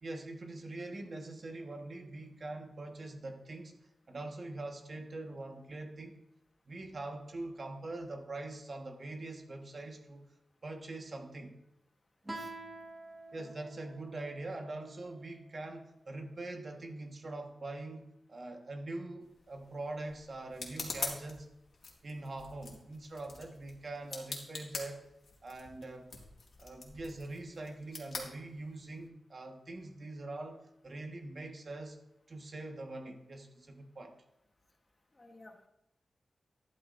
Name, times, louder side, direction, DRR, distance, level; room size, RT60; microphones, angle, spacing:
voice 1, 0.0-3.8 4.1-6.2 6.7-10.2 10.6-11.6 13.3-21.5 22.0-25.0 25.4-26.1 26.6-32.0 32.3-34.1, right 2 dB, 45° right, 3 dB, 1.4 m, -43 dB
Guitar, 12.3-15.5, right 2 dB, 20° right, 1.5 m, -48 dB
sound 1, 19.2-29.1, left 4 dB, 65° left, 2.1 m, -45 dB
voice 2, 35.1-35.7, left 2 dB, 25° left, 4 dB, 1.2 m, -55 dB
12.0 x 11.5 x 2.6 m, 0.86 s
wide cardioid pair, 120°, 0 cm